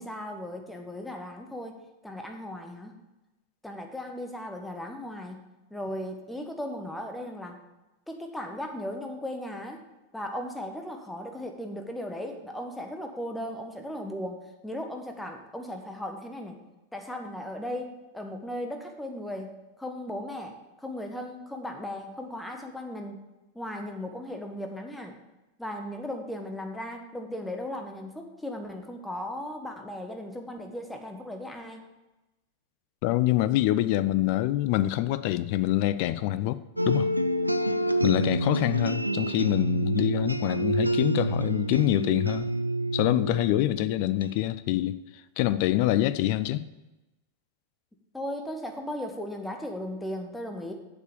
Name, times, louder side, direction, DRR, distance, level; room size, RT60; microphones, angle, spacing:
voice 1, 0.0-1.8 2.0-2.9 3.6-5.4 5.7-7.6 8.1-9.8 10.1-16.6 16.9-23.3 23.5-25.2 25.6-31.8 48.1-50.7, left 1 dB, 5° left, 1.4 m, -37 dB
voice 2, 33.0-36.6 36.8-37.1 38.0-42.5 42.9-45.0 45.4-46.7, left 15 dB, 45° left, 0.4 m, -25 dB
sound 1, 36.8-44.3, right 1 dB, 90° right, 0.4 m, -28 dB
8.2 x 7.0 x 6.8 m
figure-of-eight pair, 90°, 0 cm